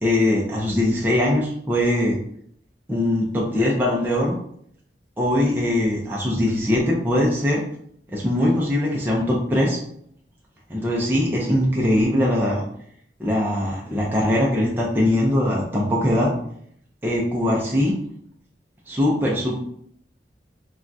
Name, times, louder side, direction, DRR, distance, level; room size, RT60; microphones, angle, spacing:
voice 1, 0.0-2.2 2.9-4.3 5.2-7.6 8.1-9.8 10.7-12.6 13.2-16.3 17.0-17.9 18.9-19.5, left 1 dB, 10° right, -4 dB, 0.4 m, -21 dB
3.4 x 2.3 x 2.6 m, 0.66 s
head